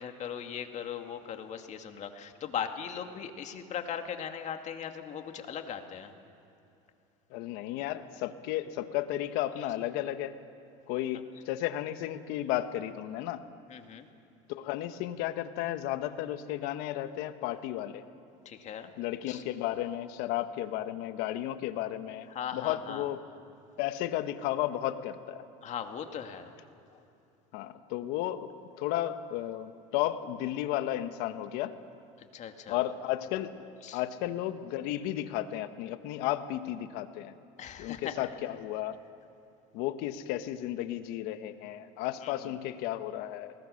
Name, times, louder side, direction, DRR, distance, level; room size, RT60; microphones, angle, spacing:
voice 1, 0.0-6.1 13.7-14.1 18.5-18.9 19.3-19.4 22.3-23.1 25.6-26.5 26.9-27.0 32.2-32.8 33.8-34.0 37.6-38.3 42.2-42.5, left 8 dB, 45° left, 6 dB, 2.2 m, -39 dB
voice 2, 7.3-10.4 10.9-13.4 14.5-18.0 19.0-22.3 22.5-23.2 23.8-25.4 27.5-28.5 28.8-31.7 32.7-37.3 37.8-39.0 39.7-43.5, left 13 dB, 70° left, 10 dB, 1.3 m, -33 dB
29.0 x 20.5 x 6.5 m, 2.7 s
supercardioid pair, 100°, 17 cm